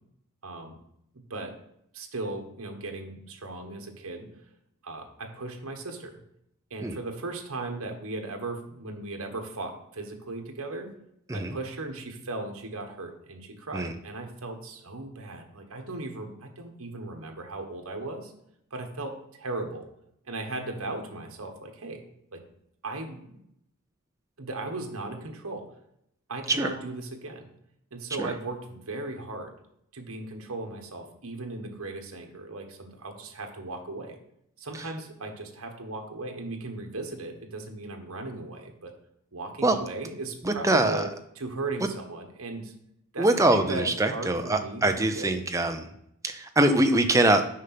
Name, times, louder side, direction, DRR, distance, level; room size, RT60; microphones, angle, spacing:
voice 1, 0.4-0.8 1.1-1.5 1.9-4.3 4.8-6.1 6.7-10.9 11.3-18.3 18.7-19.9 20.2-22.0 22.3-22.4 22.8-23.4 24.4-25.6 26.3-27.5 27.9-29.5 29.9-34.2 34.6-38.9 39.3-41.1 41.3-42.7 43.1-45.4, right 2 dB, 75° right, 3 dB, 1.3 m, -37 dB
voice 2, 40.4-41.0 43.2-45.9 46.2-47.4, right 1 dB, 15° right, 6 dB, 0.5 m, -23 dB
6.5 x 5.4 x 5.8 m, 0.76 s
head